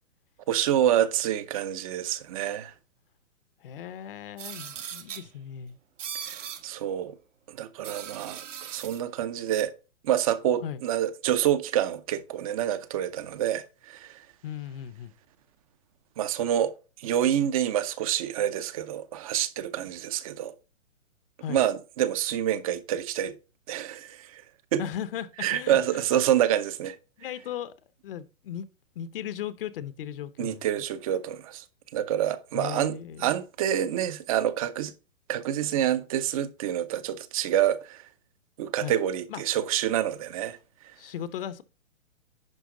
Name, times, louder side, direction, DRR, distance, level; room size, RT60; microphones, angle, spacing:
voice 1, 0.5-2.7 6.3-6.4 6.6-7.2 7.5-8.4 8.7-9.7 10.0-14.2 16.2-16.7 17.0-20.5 21.5-23.3 23.7-24.4 24.7-24.8 25.4-27.0 30.4-31.6 31.9-34.9 35.3-38.0 38.6-40.6, right 11 dB, 30° right, 0.6 m, -27 dB
voice 2, 3.6-5.8 10.6-10.8 14.4-15.1 21.4-21.6 24.8-26.2 27.2-27.7 28.0-28.7 29.0-30.6 32.5-33.3 38.8-39.0 39.3-39.4 41.0-41.6, left 10 dB, 45° left, 0.7 m, -37 dB
sound 1, 4.4-5.3 6.0-6.6 7.8-9.0 9.5-9.6, right 9 dB, 70° right, 1.3 m, -39 dB
11.0 x 4.3 x 3.7 m
hypercardioid pair, 135°, 39 cm